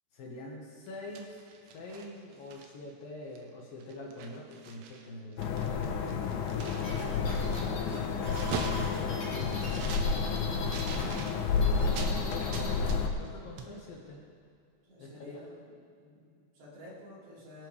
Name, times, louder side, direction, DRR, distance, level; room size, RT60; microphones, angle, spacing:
voice 1, 0.1-6.3 7.2-7.9 8.7-9.7 11.8-12.1 12.4-14.2 15.0-15.4, left 1 dB, 65° left, -2 dB, 2.9 m, -45 dB
sound 1, 0.9-2.9 3.4-3.5 3.8-5.1 5.3-12.2 12.5-13.3 13.6-13.7, right 6 dB, 80° right, 3.3 m, -43 dB
sound 2, 5.4-13.1, left 5 dB, 85° left, 1.7 m, -30 dB
sound 3, 6.8-11.0 11.3-12.8, left 1 dB, 35° left, 4.2 m, -42 dB
voice 2, 11.5-12.1 14.8-15.6 16.0-17.7, left 1 dB, 60° right, -8 dB, 6.1 m, -50 dB
23.0 x 12.5 x 3.4 m, 2.4 s
omnidirectional pair, 5.0 m